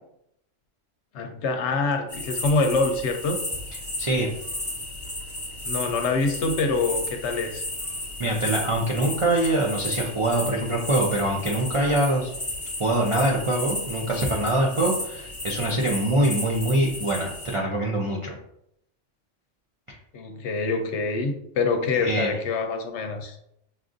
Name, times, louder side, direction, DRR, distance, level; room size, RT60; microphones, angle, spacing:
voice 1, 1.1-3.4 5.6-7.6 20.1-23.4, left 3 dB, 70° left, 5 dB, 0.8 m, -25 dB
sound 1, 2.1-17.6, left 1 dB, 10° left, 1.2 m, -34 dB
voice 2, 4.0-4.3 8.2-12.3 12.8-18.3 19.9-20.0 21.9-22.4, right 1 dB, 50° right, -3 dB, 0.4 m, -24 dB
5.7 x 2.5 x 2.5 m, 0.74 s
omnidirectional pair, 1.3 m